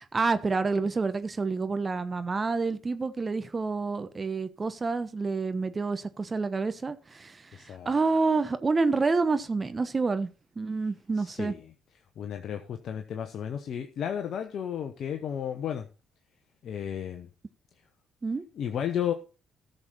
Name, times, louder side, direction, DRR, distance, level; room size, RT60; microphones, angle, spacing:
voice 1, 0.0-10.3 10.6-11.5 18.2-18.4, right 4 dB, 35° right, 1.0 m, -28 dB
voice 2, 7.5-7.9 11.1-11.7 12.2-15.9 16.6-17.3 18.5-19.1, left 9 dB, 60° left, 1.0 m, -33 dB
14.5 x 6.7 x 4.2 m
hypercardioid pair, 45°, 0 cm